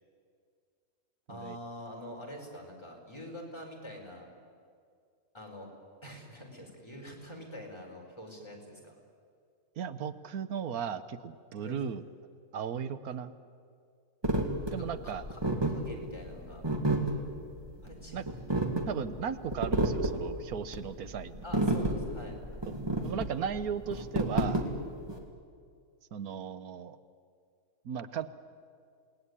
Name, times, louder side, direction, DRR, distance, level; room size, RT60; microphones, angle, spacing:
voice 1, 1.3-4.3 5.3-5.7 6.0-9.0 11.6-11.8 14.7-15.4 15.7-16.6 17.8-18.2 18.5-18.7 21.4-22.4, equal, 20° left, -1 dB, 5.0 m, -45 dB
voice 2, 9.8-12.0 12.5-13.3 14.7-15.2 18.1-18.2 18.9-21.4 22.7-22.8 23.0-24.7 26.1-27.0 27.8-28.3, right 7 dB, 90° right, 12 dB, 1.4 m, -36 dB
sound 1, 14.2-25.2, right 1 dB, 15° right, 2.7 m, -31 dB
28.0 x 19.0 x 9.8 m, 2.2 s
omnidirectional pair, 1.5 m